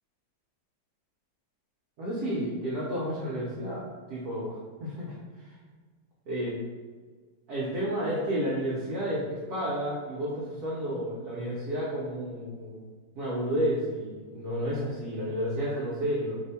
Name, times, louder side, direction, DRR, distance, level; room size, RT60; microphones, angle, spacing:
voice 1, 2.0-3.8 4.1-5.5 6.3-6.5 7.5-12.9 13.1-16.4, equal, 65° right, -7 dB, 1.0 m, -31 dB
3.4 x 2.2 x 4.1 m, 1.5 s
omnidirectional pair, 2.2 m